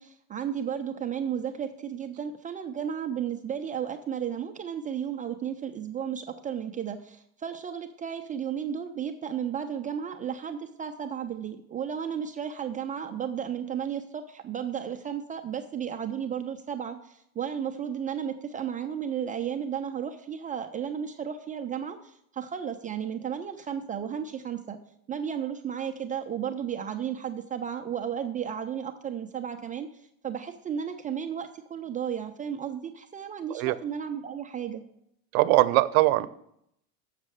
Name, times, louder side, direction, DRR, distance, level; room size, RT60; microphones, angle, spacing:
voice 1, 0.0-24.8 25.1-34.8, right 8 dB, 20° right, 5 dB, 0.3 m, -33 dB
voice 2, 35.3-36.3, right 19 dB, 65° right, 14 dB, 0.7 m, -21 dB
7.3 x 6.4 x 7.7 m, 0.74 s
supercardioid pair, 125°, 46 cm